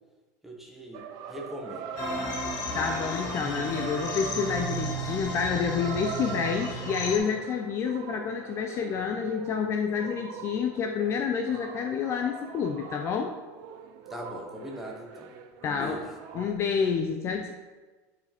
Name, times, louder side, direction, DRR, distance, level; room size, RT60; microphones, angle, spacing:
voice 1, 0.4-1.9 14.1-15.3 15.6-16.1, left 1 dB, 5° right, 0 dB, 1.0 m, -40 dB
sound 1, 0.9-16.5, right 7 dB, 50° right, 0.6 m, -42 dB
sound 2, 2.0-7.2, equal, 70° left, 2.4 m, -33 dB
voice 2, 2.7-13.4 15.6-16.0 16.3-17.5, left 6 dB, 30° left, 4 dB, 0.4 m, -29 dB
10.5 x 4.8 x 3.5 m, 1.3 s
supercardioid pair, 155°, 9 cm